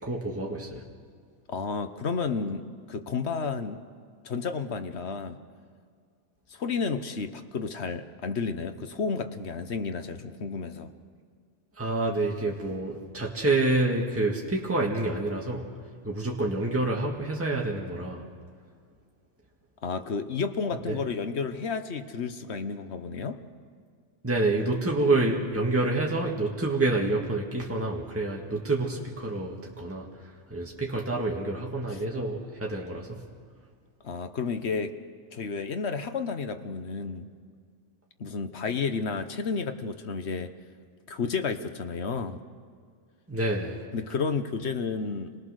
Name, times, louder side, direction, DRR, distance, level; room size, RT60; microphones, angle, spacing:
voice 1, 0.0-0.8 11.8-15.7 16.0-18.3 20.9-21.0 24.2-30.1 30.5-33.2 43.3-43.8, right 2 dB, 10° right, -2 dB, 1.9 m, -28 dB
voice 2, 1.5-3.8 4.2-5.4 6.5-10.9 19.8-23.4 31.9-32.0 34.0-35.0 35.3-37.3 38.2-40.5 41.1-42.4 43.9-45.4, left 5 dB, 65° left, 9 dB, 1.4 m, -31 dB
27.5 x 19.0 x 6.5 m, 2.1 s
omnidirectional pair, 1.2 m